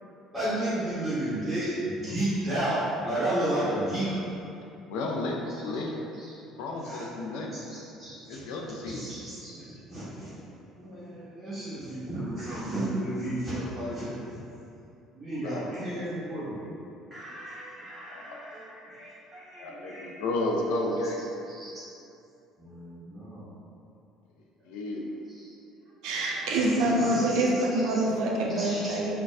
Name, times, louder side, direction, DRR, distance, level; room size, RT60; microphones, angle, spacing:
voice 1, 0.3-4.3 6.8-7.0 7.7-8.4 8.9-10.5 10.7-14.2 15.1-16.7 17.1-20.1 21.5-21.7 22.6-23.5 25.4-25.5 26.5-27.5 28.6-29.0, right 1 dB, 5° right, -14 dB, 0.9 m, -33 dB
voice 2, 4.8-5.9 6.6-7.7 8.3-9.1 15.4-16.0 18.1-18.4 19.6-21.2 24.7-25.2, left 2 dB, 60° left, 0 dB, 0.3 m, -32 dB
voice 3, 26.0-29.1, right 1 dB, 60° right, -2 dB, 0.3 m, -26 dB
3.8 x 2.1 x 2.4 m, 2.7 s
figure-of-eight pair, 55°, 0 cm